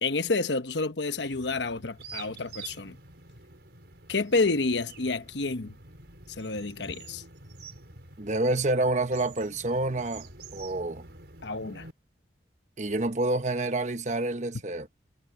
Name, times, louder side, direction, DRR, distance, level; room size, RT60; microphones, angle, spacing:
voice 1, 0.0-3.0 4.1-5.8 6.4-7.2 11.4-11.9, left 3 dB, 75° left, 1.1 m, -29 dB
sound 1, 1.1-11.9, right 4 dB, 65° right, 5.6 m, -48 dB
voice 2, 8.2-11.1 12.8-14.9, right 2 dB, 40° right, 1.1 m, -28 dB
head